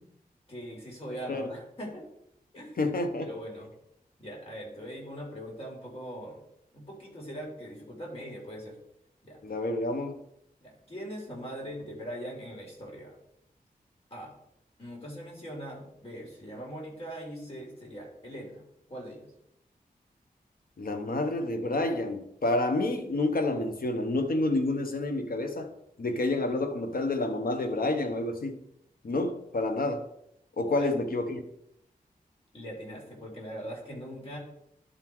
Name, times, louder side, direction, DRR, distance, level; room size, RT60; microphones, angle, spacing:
voice 1, 0.5-2.0 2.5-2.8 3.2-3.7 4.2-6.4 6.7-8.8 9.2-9.4 10.6-13.2 14.1-14.3 14.8-19.3 30.8-30.9 32.5-34.4, equal, 40° left, 3.2 m, -41 dB
voice 2, 2.8-3.3 9.4-10.2 20.8-25.7 26.0-28.6 29.0-30.0 30.6-31.4, left 2 dB, 70° left, 1.0 m, -29 dB
11.5 x 3.8 x 4.6 m
wide cardioid pair, 90°, 16 cm